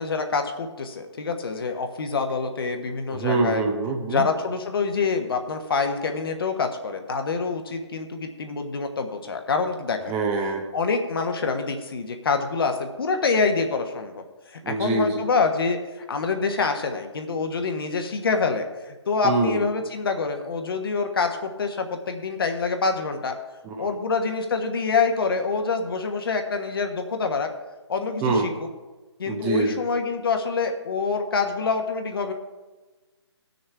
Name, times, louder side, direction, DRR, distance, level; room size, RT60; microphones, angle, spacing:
voice 1, 0.0-3.6 4.0-10.0 10.7-15.8 16.1-23.3 23.8-27.5 27.9-28.7 29.2-32.3, left 4 dB, 55° left, 5 dB, 1.3 m, -26 dB
voice 2, 3.1-4.3 10.1-10.6 14.6-15.2 19.2-19.6 23.6-23.9 28.2-28.5 29.3-29.8, right 3 dB, 15° right, 1 dB, 0.7 m, -24 dB
18.5 x 6.5 x 3.4 m, 1.2 s
figure-of-eight pair, 145°, 15 cm